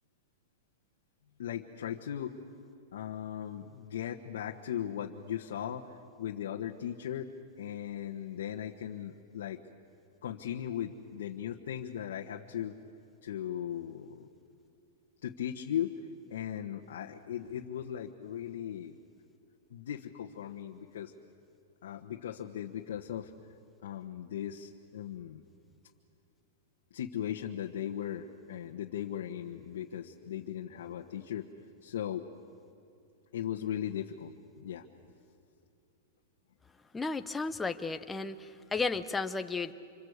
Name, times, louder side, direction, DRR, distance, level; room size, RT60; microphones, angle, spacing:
voice 1, 1.4-2.3 2.9-5.9 6.2-7.3 7.6-9.6 10.2-12.7 13.2-14.3 15.2-16.0 16.3-18.9 19.7-21.1 21.8-23.3 23.8-25.4 26.9-31.5 31.8-32.2 33.3-34.8, left 10 dB, 75° left, 1 dB, 1.4 m, -38 dB
voice 2, 36.9-39.7, left 4 dB, 5° left, 9 dB, 0.7 m, -33 dB
26.5 x 26.0 x 8.2 m, 2.6 s
supercardioid pair, 175°, 0 cm